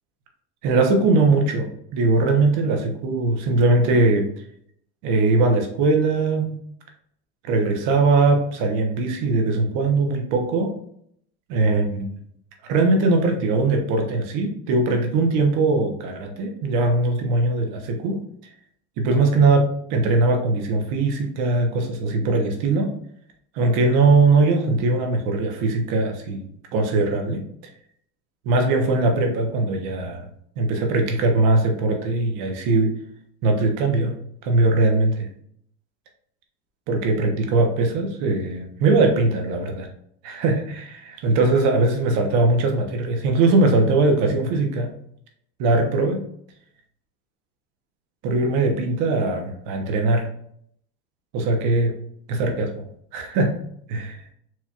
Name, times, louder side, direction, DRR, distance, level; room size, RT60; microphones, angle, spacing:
voice 1, 0.6-4.3 5.0-6.5 7.4-10.7 11.5-12.1 12.7-18.2 19.0-22.9 23.5-27.4 28.4-30.3 30.6-32.9 33.4-34.1 34.4-35.3 36.9-39.9 40.2-44.9 45.6-46.2 48.2-50.3 51.3-51.9 52.3-52.8 53.1-53.6 53.9-54.2, right 3 dB, 70° right, 3 dB, 1.1 m, -20 dB
4.5 x 3.1 x 2.4 m, 0.67 s
supercardioid pair, 110°, 31 cm